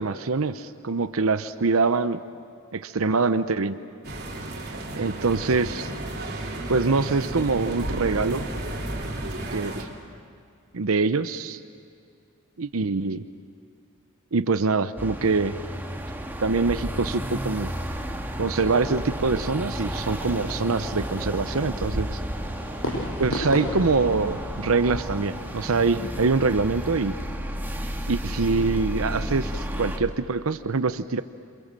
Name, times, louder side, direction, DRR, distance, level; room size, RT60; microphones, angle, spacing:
voice 1, 0.0-2.2 2.7-3.8 4.9-5.9 6.7-8.4 9.5-9.9 10.7-11.6 12.6-13.2 14.3-15.5 16.4-17.7 18.4-22.2 23.2-27.1 28.1-31.2, right 4 dB, 75° right, 12 dB, 0.8 m, -24 dB
sound 1, 4.0-9.8, right 1 dB, 50° right, 3.9 m, -32 dB
sound 2, 15.0-30.0, equal, 10° right, 1.8 m, -32 dB
Fireworks, 22.4-27.4, left 1 dB, 65° left, 7.0 m, -35 dB
27.5 x 27.0 x 7.6 m, 2.3 s
head